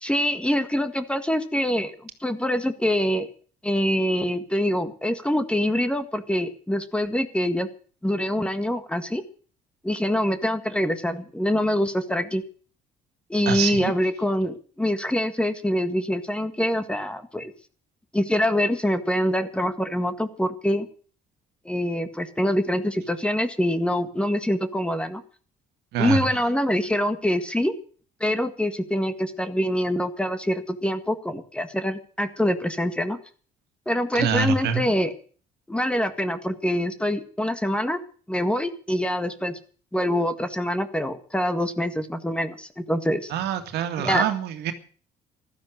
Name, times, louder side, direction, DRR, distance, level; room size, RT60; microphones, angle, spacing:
voice 1, 0.0-3.3 3.6-7.7 8.0-9.2 9.8-12.4 13.3-17.5 18.1-20.9 21.7-25.2 26.0-27.7 28.2-33.2 33.9-35.1 35.7-38.0 38.3-39.6 39.9-43.3 44.0-44.2, equal, 5° left, 9 dB, 1.7 m, -25 dB
voice 2, 13.5-13.9 25.9-26.3 34.1-34.8 43.3-44.7, right 7 dB, 80° right, 7 dB, 2.2 m, -25 dB
15.5 x 13.0 x 6.4 m, 0.42 s
cardioid pair, 110°, 17 cm